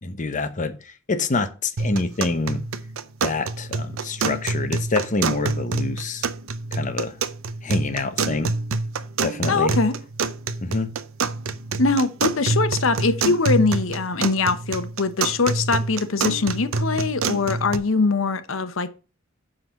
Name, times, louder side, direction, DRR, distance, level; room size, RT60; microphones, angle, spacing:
voice 1, 0.0-2.6 3.2-6.2 6.7-7.2 7.6-8.5 9.2-9.7 10.6-10.9, left 3 dB, 40° left, 0.8 m, -26 dB
sound 1, 1.8-17.8, right 3 dB, 80° right, 0.6 m, -27 dB
voice 2, 9.5-9.9 11.8-18.9, left 3 dB, 70° left, 0.9 m, -22 dB
9.6 x 3.9 x 5.9 m
head